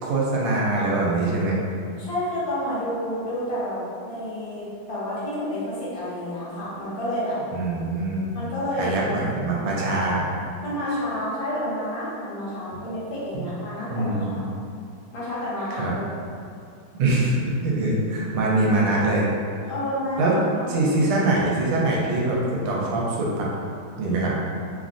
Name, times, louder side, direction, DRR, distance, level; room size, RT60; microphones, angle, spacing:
voice 1, 0.0-1.6 7.5-8.3 8.8-10.2 13.9-14.4 15.8-15.9 17.0-17.3 17.6-19.2 20.2-20.4 20.7-23.5 24.0-24.3, right 2 dB, 85° right, -4 dB, 1.5 m, -23 dB
voice 2, 2.0-7.4 8.3-9.1 10.6-14.5 15.1-16.0 19.7-21.0, left 1 dB, 70° left, -9 dB, 1.5 m, -30 dB
3.5 x 2.5 x 2.5 m, 2.4 s
omnidirectional pair, 2.4 m